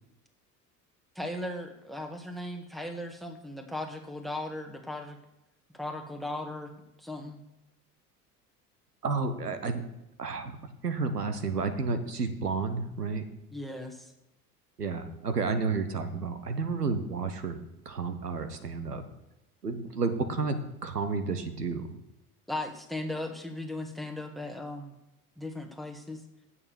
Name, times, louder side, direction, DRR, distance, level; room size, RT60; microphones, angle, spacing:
voice 1, 1.1-5.2 5.7-6.7 7.0-7.4 13.5-14.1 22.5-24.9 25.4-26.2, left 1 dB, ahead, 5 dB, 1.5 m, -37 dB
voice 2, 9.0-9.8 10.2-10.6 10.8-13.2 14.8-17.6 17.9-19.0 19.6-21.9, right 4 dB, 90° right, 9 dB, 0.9 m, -31 dB
8.7 x 7.0 x 7.0 m, 0.93 s
figure-of-eight pair, 65°, 46 cm